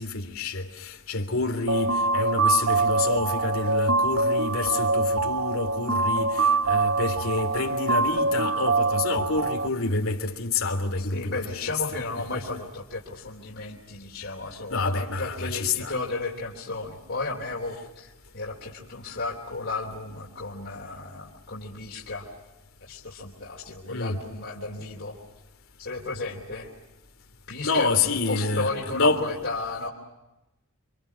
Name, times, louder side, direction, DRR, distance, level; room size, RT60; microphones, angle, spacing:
voice 1, 0.0-11.7 14.7-15.9 23.9-24.2 27.6-29.2, left 3 dB, 75° left, 3.3 m, -28 dB
sound 1, 1.7-9.7, right 3 dB, 65° right, 1.1 m, -24 dB
voice 2, 11.0-22.3 22.8-25.2 25.8-26.7 27.5-29.9, left 3 dB, 60° left, 3.8 m, -34 dB
29.5 x 26.5 x 7.0 m
head